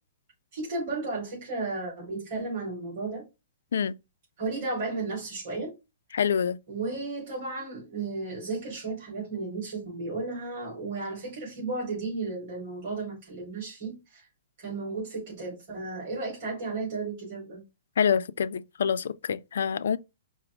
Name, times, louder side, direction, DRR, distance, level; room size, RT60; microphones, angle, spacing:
voice 1, 0.5-3.2 4.4-5.7 6.7-14.3 14.6-17.6, right 3 dB, 40° right, 2.9 m, -34 dB
voice 2, 6.1-6.6 18.0-20.0, left 7 dB, 75° left, 0.3 m, -26 dB
4.9 x 2.0 x 4.7 m
hypercardioid pair, 175°, 0 cm